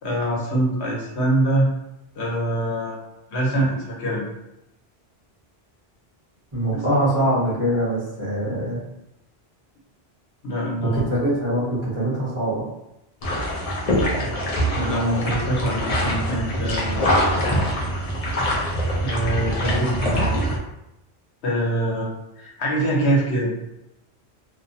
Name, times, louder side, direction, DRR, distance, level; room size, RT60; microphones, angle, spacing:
voice 1, 0.0-1.7 2.2-2.9 3.3-4.2 6.7-6.8 10.4-11.1 14.7-17.0 19.0-20.5 21.4-22.1 22.4-23.5, right 1 dB, 90° left, -4 dB, 1.0 m, -24 dB
voice 2, 6.5-8.8 10.8-12.6, right 1 dB, 30° right, -9 dB, 0.9 m, -23 dB
sound 1, 13.2-20.6, equal, 45° left, 0.5 m, -24 dB
2.5 x 2.0 x 2.6 m, 0.88 s
omnidirectional pair, 1.1 m